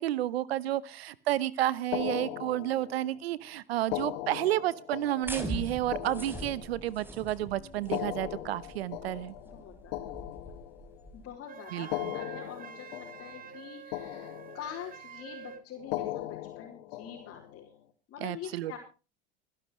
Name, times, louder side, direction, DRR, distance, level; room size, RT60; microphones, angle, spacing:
voice 1, 0.0-9.3 11.7-12.1 18.2-18.7, right 14 dB, 85° right, 20 dB, 1.0 m, -31 dB
sound 1, 1.9-3.2 3.8-7.1 7.8-11.1 11.8-13.6 13.9-15.0 15.8-17.6, left 15 dB, 70° left, 2.2 m, -39 dB
sound 2, 5.2-11.3, equal, 5° right, 3.6 m, -42 dB
voice 2, 7.5-7.9 9.4-9.9 11.1-17.7 18.1-18.8, left 9 dB, 50° left, -3 dB, 4.5 m, -45 dB
Wind instrument woodwind instrument, 11.5-15.7, right 8 dB, 30° right, 1.2 m, -47 dB
26.0 x 11.5 x 3.2 m, 0.33 s
hypercardioid pair, 85°, 30 cm